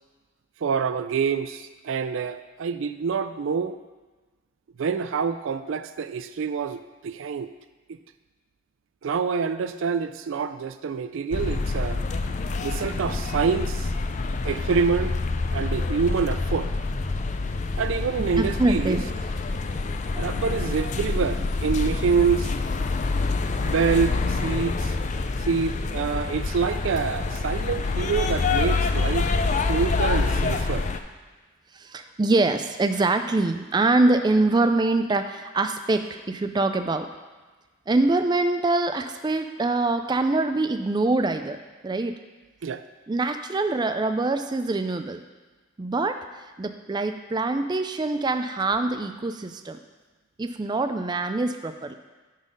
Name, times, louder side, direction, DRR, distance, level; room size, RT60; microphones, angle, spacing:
voice 1, 0.6-3.8 4.8-7.5 9.0-12.0 12.6-13.9 14.4-15.2 15.5-16.7 17.8-19.0 20.1-22.5 23.6-24.9 25.5-29.3 29.7-30.8 42.6-42.8, right 5 dB, 85° right, 11 dB, 0.4 m, -26 dB
sound 1, 11.3-31.0, left 3 dB, 40° left, 0.4 m, -26 dB
voice 2, 18.4-19.0 31.7-37.1 37.9-42.2 43.1-45.2 45.8-46.2 46.6-49.8 50.4-52.0, right 2 dB, 20° right, 8 dB, 0.4 m, -24 dB
9.8 x 4.0 x 5.3 m, 1.3 s
head